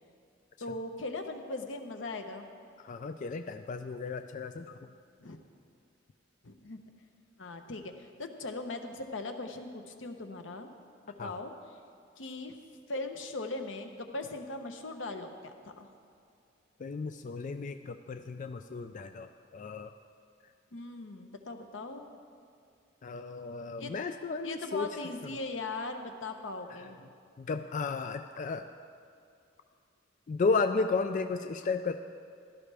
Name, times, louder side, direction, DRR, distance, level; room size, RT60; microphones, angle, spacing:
voice 1, 0.6-2.5 4.8-5.4 6.4-6.8 7.4-10.7 11.0-11.5 12.2-12.5 12.9-15.9 20.7-22.1 23.8-23.9 24.4-27.0, left 2 dB, 85° left, 5 dB, 1.0 m, -39 dB
voice 2, 2.8-4.7 11.2-11.3 16.8-19.9 23.0-24.9 27.4-28.6 30.3-32.0, left 4 dB, 40° left, 8 dB, 0.4 m, -33 dB
16.0 x 12.5 x 3.4 m, 2.4 s
head